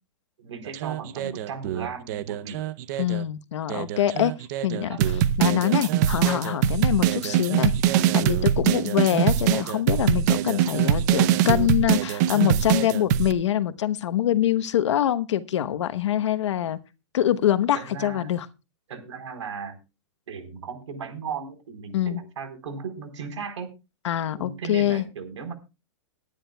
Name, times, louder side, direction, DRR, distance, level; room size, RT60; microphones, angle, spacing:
voice 1, 0.4-2.6 4.7-5.0 7.2-7.4 10.3-10.6 17.7-18.3 18.9-19.8 20.3-23.7 24.3-25.5, right 6 dB, 85° right, 4.1 m, -36 dB
sound 1, 0.7-3.2 3.7-13.3, right 10 dB, 40° right, 0.7 m, -23 dB
voice 2, 3.0-4.3 4.6-5.0 5.4-7.7 8.1-16.8 17.1-18.5 21.9-22.2 24.0-25.0, left 11 dB, 80° left, 1.0 m, -24 dB
22.5 x 10.0 x 2.3 m
supercardioid pair, 160°, 15 cm